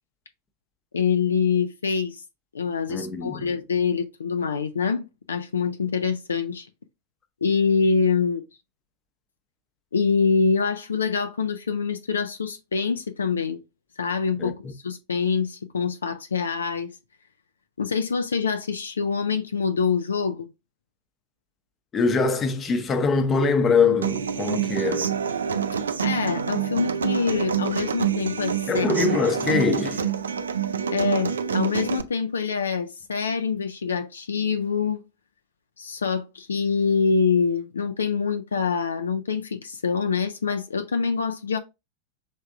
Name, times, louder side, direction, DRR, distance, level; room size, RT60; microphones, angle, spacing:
voice 1, 0.9-2.2 2.5-6.7 7.4-8.4 9.9-13.6 14.0-16.9 17.8-20.5 26.0-29.2 30.9-35.0 35.8-41.6, left 5 dB, 70° left, 0.3 m, -25 dB
voice 2, 2.9-3.5 14.4-14.5 21.9-25.1 28.7-30.1, left 4 dB, 25° left, 0.7 m, -23 dB
Human voice / Acoustic guitar, 24.0-32.0, right 7 dB, 70° right, 0.4 m, -27 dB
6.2 x 3.4 x 2.4 m
figure-of-eight pair, 90°, 0 cm